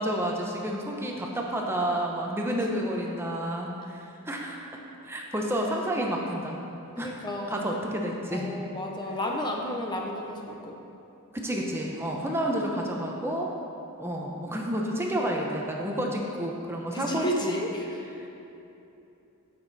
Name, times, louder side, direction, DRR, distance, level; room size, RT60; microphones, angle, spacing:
voice 1, 0.0-4.6 5.0-6.6 7.0-7.1 7.5-8.5 11.3-13.5 14.0-17.5 18.1-18.3, right 1 dB, 10° right, -1 dB, 0.9 m, -30 dB
voice 2, 7.0-7.7 8.3-10.8 15.8-16.1 16.9-17.8, left 1 dB, 20° left, 0 dB, 0.9 m, -32 dB
16.0 x 7.1 x 4.2 m, 2.8 s
head